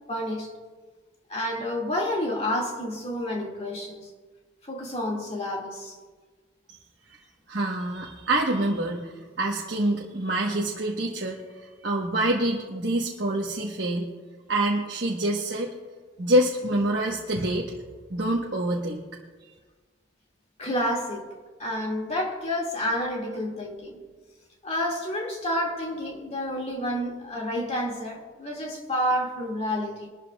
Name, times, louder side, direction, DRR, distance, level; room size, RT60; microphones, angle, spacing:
voice 1, 0.1-0.5 1.3-4.1 4.7-6.0 7.5-7.6 20.6-21.3 21.6-24.0 24.6-30.1, left 1 dB, 30° left, 2.2 m, -29 dB
voice 2, 7.5-14.1 14.5-15.7 16.2-17.7 18.1-19.0, right 1 dB, 60° right, 1.2 m, -26 dB
22.5 x 12.5 x 2.4 m
head